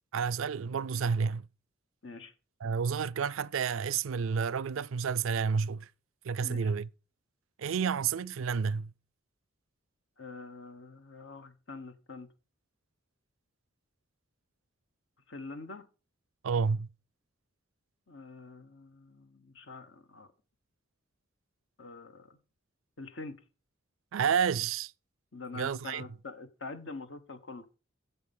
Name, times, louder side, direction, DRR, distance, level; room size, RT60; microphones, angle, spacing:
voice 1, 0.1-1.5 2.6-5.9 6.2-6.9 7.6-8.9 16.4-16.9 24.1-24.9 25.5-26.0, right 6 dB, 75° right, 0.4 m, -30 dB
voice 2, 2.0-2.3 6.4-6.7 10.2-12.3 15.3-15.9 18.1-20.3 21.8-22.4 23.0-23.4 25.3-27.7, left 3 dB, 65° left, 1.3 m, -45 dB
9.6 x 7.2 x 5.5 m
head